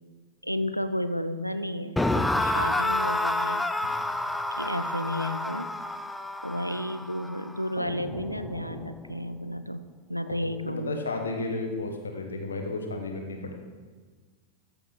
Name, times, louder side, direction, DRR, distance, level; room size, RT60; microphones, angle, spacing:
voice 1, 0.4-3.6 4.6-5.7 6.4-9.8 10.1-11.0, equal, 90° left, 12 dB, 0.4 m, -32 dB
sound 1, 2.0-9.1, left 1 dB, 5° left, 0.5 m, -29 dB
voice 2, 10.4-13.5, left 3 dB, 75° left, 3 dB, 1.4 m, -33 dB
14.0 x 6.8 x 3.9 m, 1.4 s
figure-of-eight pair, 90°, 0 cm